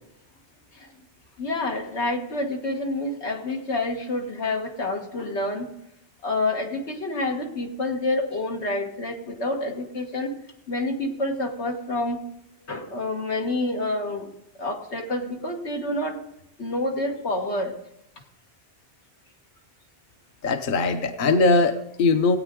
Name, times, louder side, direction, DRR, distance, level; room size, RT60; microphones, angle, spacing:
voice 1, 1.4-5.7 6.2-10.3 10.7-12.2 12.7-14.3 14.6-16.2 16.6-17.7, left 2 dB, 90° left, 2 dB, 1.8 m, -28 dB
voice 2, 20.4-22.4, left 3 dB, 55° left, 8 dB, 0.9 m, -20 dB
17.0 x 9.0 x 3.7 m, 0.82 s
omnidirectional pair, 1.1 m